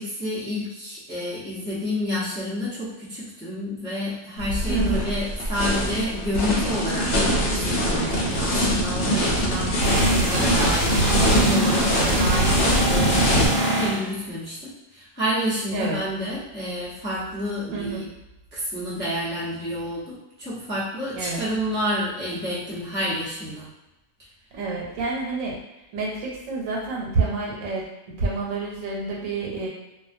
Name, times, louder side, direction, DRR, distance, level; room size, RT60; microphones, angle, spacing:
voice 1, 0.0-7.1 7.5-12.5 12.9-18.0 18.5-23.7, equal, 15° left, -10 dB, 0.4 m, -29 dB
sound 1, 4.4-13.5, equal, 60° left, 0.7 m, -23 dB
voice 2, 4.7-5.1 12.1-12.4 15.7-16.0 17.7-18.0 21.1-21.5 24.5-25.6 25.9-29.7, right 3 dB, 85° right, -3 dB, 1.1 m, -28 dB
sound 2, 9.8-14.0, right 1 dB, 55° right, 0.9 m, -24 dB
2.3 x 2.2 x 2.5 m, 0.95 s
omnidirectional pair, 1.4 m